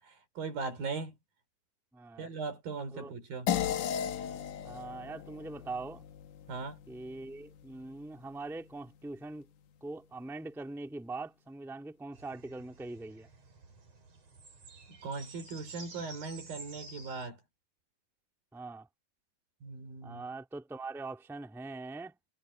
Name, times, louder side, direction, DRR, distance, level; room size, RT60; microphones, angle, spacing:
voice 1, 0.4-1.1 2.2-3.5 6.5-6.8 15.0-17.4 19.6-20.2, right 4 dB, 75° right, 5.9 m, -38 dB
voice 2, 1.9-2.3 2.9-3.1 4.6-6.0 6.9-9.5 9.8-13.3 18.5-18.9 20.0-22.2, right 3 dB, ahead, 1.8 m, -42 dB
sound 1, 3.5-8.2, left 9 dB, 70° left, 2.4 m, -37 dB
sound 2, 12.1-17.3, right 3 dB, 45° right, 5.7 m, -51 dB
omnidirectional pair, 4.1 m